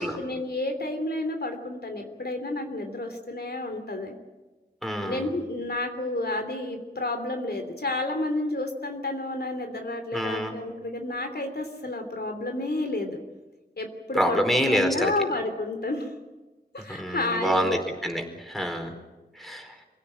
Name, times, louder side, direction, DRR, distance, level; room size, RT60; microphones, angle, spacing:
voice 1, 0.0-4.1 5.0-13.2 13.8-16.1 16.7-17.8, left 2 dB, 70° left, 5 dB, 3.1 m, -30 dB
voice 2, 4.8-5.2 10.1-10.5 14.2-15.1 17.0-18.9 19.4-19.7, equal, ahead, 4 dB, 4.4 m, -26 dB
25.0 x 17.0 x 8.9 m, 1.2 s
wide cardioid pair, 65°, 17 cm